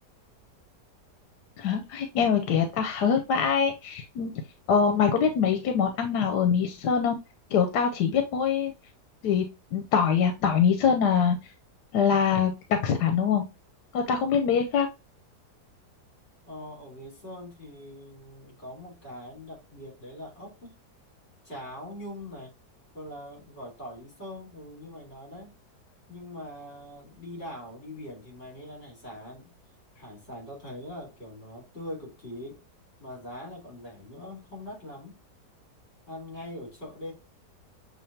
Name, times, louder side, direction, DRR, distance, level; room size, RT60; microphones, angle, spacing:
voice 1, 1.6-4.3 4.7-7.1 7.5-8.7 9.2-9.4 9.7-11.4 11.9-13.5 13.9-14.9, left 7 dB, 85° left, 1.2 m, -24 dB
voice 2, 16.5-20.8 21.4-22.5 22.9-25.5 26.1-29.5 29.9-32.6 33.0-35.2 36.1-37.1, left 1 dB, 40° left, 3.1 m, -42 dB
7.1 x 2.7 x 2.7 m
omnidirectional pair, 1.7 m